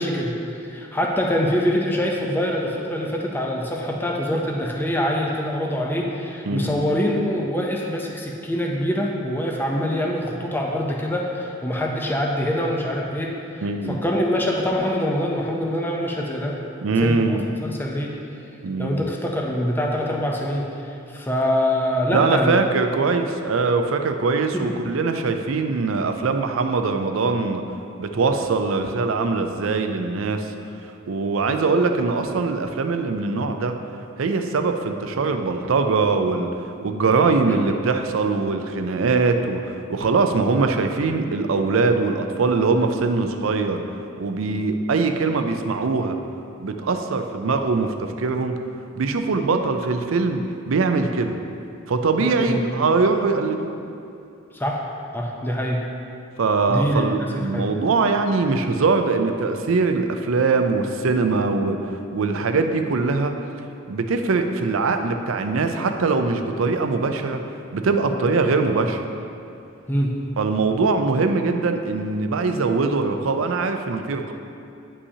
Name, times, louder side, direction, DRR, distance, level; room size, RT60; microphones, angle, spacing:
voice 1, 0.0-16.6 16.9-18.1 18.8-22.6 24.5-24.8 37.5-37.6 52.2-52.6 54.5-54.8 55.1-55.8 56.7-57.6 69.9-70.2, equal, 10° left, -1 dB, 0.6 m, -24 dB
voice 2, 13.6-14.0 16.8-17.5 18.6-19.0 22.1-27.6 28.0-30.5 31.1-33.7 34.2-36.5 36.8-43.8 44.2-46.2 46.6-48.5 49.0-51.4 51.9-53.8 56.4-63.3 63.9-67.4 67.7-69.0 70.4-74.3, right 4 dB, 75° right, 6 dB, 0.5 m, -22 dB
9.7 x 5.4 x 2.8 m, 2.6 s
head